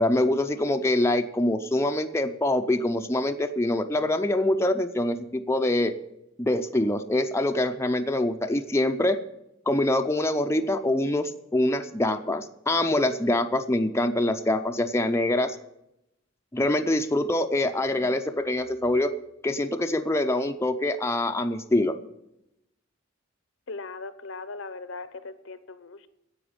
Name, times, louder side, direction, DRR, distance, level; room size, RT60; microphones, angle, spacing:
voice 1, 0.0-5.9 6.4-9.2 9.7-15.6 16.5-19.1 19.4-22.0, left 1 dB, 15° left, 6 dB, 0.6 m, -25 dB
voice 2, 23.7-26.1, left 3 dB, 75° left, 14 dB, 0.9 m, -39 dB
10.5 x 7.9 x 9.7 m, 0.85 s
head